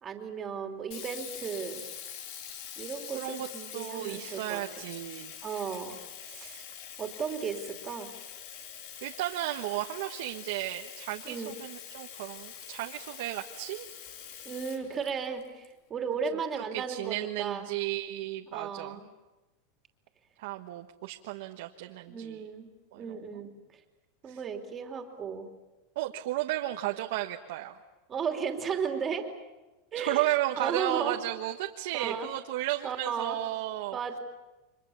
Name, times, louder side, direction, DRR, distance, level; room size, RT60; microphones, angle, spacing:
voice 1, 0.0-1.9 2.8-4.6 5.4-6.0 6.3-6.6 7.0-8.1 11.2-11.5 14.4-17.7 18.5-19.1 22.1-22.7 23.0-23.5 24.2-25.5 28.1-29.3 29.9-30.3 30.6-31.2 31.9-32.3 32.8-33.4 33.9-34.2, right 6 dB, 20° right, 4 dB, 2.9 m, -35 dB
Sink (filling or washing), 0.9-15.7, left 9 dB, 55° left, 2.8 m, -45 dB
voice 2, 3.1-3.5 3.7-5.3 6.3-6.6 9.0-13.9 16.6-19.0 20.4-22.4 22.9-23.4 24.3-24.4 25.9-27.8 29.9-34.0, right 15 dB, 70° right, 4 dB, 1.3 m, -34 dB
30.0 x 24.5 x 7.1 m, 1.1 s
supercardioid pair, 150°, 0 cm